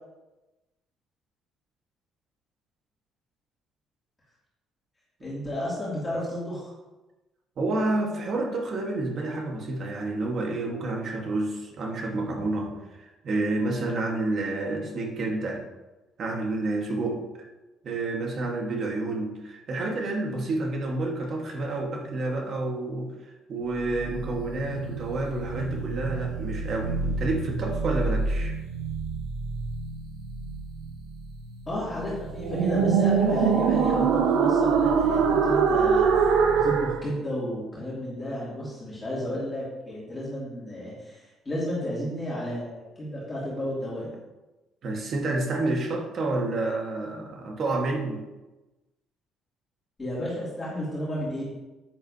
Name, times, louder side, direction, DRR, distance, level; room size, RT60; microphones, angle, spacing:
voice 1, 5.2-6.7 31.7-44.1 50.0-51.4, equal, 15° left, -9 dB, 2.7 m, -32 dB
voice 2, 7.6-15.6 16.2-17.4 17.8-28.6 44.8-48.2, right 2 dB, 40° right, 1 dB, 1.5 m, -29 dB
sound 1, 23.8-37.0, right 6 dB, 70° right, 0.9 m, -25 dB
10.0 x 9.4 x 2.8 m, 1.1 s
cardioid pair, 175°, 0 cm